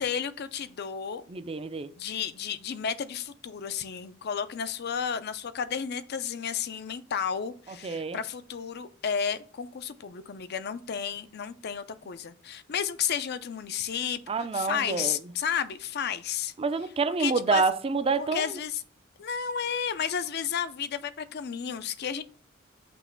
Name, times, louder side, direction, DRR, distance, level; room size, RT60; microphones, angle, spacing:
voice 1, 0.0-1.2 2.0-14.2 14.5-16.5 17.2-17.6 18.2-18.8 19.2-22.2, left 7 dB, 55° left, 0.5 m, -32 dB
voice 2, 1.3-1.9 7.8-8.2 14.3-15.2 16.6-18.6, right 4 dB, 30° right, 0.4 m, -27 dB
6.1 x 3.0 x 5.7 m
head